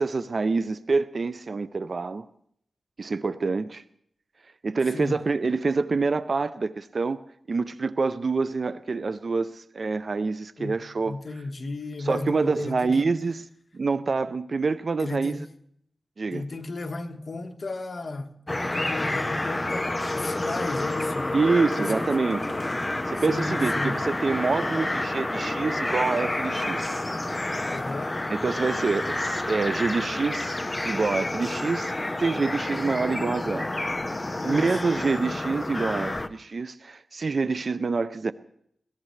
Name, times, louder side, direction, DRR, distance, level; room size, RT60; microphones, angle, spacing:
voice 1, 0.0-2.3 3.0-3.8 4.6-7.2 7.5-11.2 12.0-13.4 13.7-15.4 16.2-16.4 21.3-22.6 23.1-26.9 28.3-31.9 32.2-33.7 34.4-38.3, right 4 dB, 55° right, 0.5 m, -26 dB
voice 2, 4.9-5.2 10.6-13.1 15.0-15.4 16.3-21.4 21.8-22.1 23.3-24.0 27.7-28.2 34.4-34.8, left 2 dB, 50° left, 1.4 m, -34 dB
sound 1, 18.5-36.3, left 2 dB, 25° left, 0.9 m, -29 dB
21.5 x 17.5 x 3.3 m
cardioid pair, 65°, 0 cm